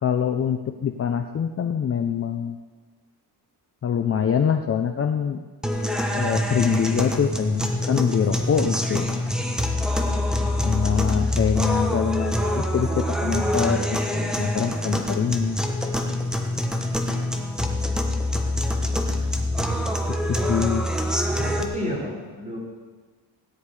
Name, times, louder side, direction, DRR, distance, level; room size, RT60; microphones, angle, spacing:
voice 1, 0.0-2.6 3.8-5.5 6.1-9.1 10.6-15.6 20.3-20.8, left 7 dB, 35° left, 6 dB, 0.7 m, -24 dB
sound 1, 5.6-21.6, left 1 dB, ahead, 1.3 m, -25 dB
voice 2, 20.7-22.6, equal, 20° right, -5 dB, 5.4 m, -32 dB
17.0 x 10.5 x 4.9 m, 1.3 s
cardioid pair, 125°, 39 cm